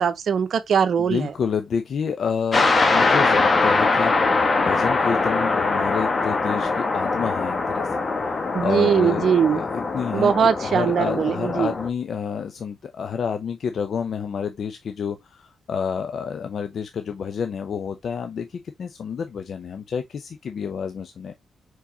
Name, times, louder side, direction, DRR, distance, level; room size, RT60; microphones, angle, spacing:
voice 1, 0.0-1.3 8.5-9.6 10.1-11.7, right 7 dB, 70° right, 0.8 m, -21 dB
voice 2, 1.0-21.3, left 6 dB, 65° left, 0.6 m, -29 dB
sound 1, 2.5-11.9, left 3 dB, 45° left, 1.2 m, -22 dB
4.7 x 4.0 x 2.8 m
cardioid pair, 70°, 0 cm